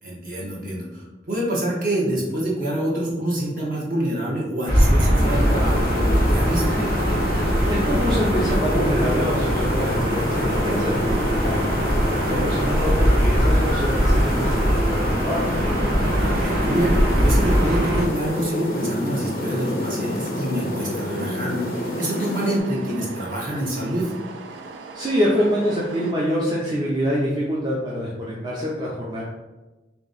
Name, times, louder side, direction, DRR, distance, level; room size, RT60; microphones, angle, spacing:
voice 1, 0.0-6.8 12.1-12.4 16.0-24.1, right 1 dB, 50° right, -4 dB, 1.1 m, -26 dB
Gull seagull / Ocean, 4.7-18.1, equal, 65° right, 1.3 m, -21 dB
sound 1, 5.2-22.6, left 1 dB, 50° left, 0.4 m, -28 dB
voice 2, 7.4-11.6 12.3-15.5 24.9-29.2, equal, 25° right, -6 dB, 0.5 m, -25 dB
sound 2, 9.0-26.1, right 3 dB, 90° right, 0.4 m, -39 dB
3.6 x 2.9 x 3.9 m, 1.1 s
head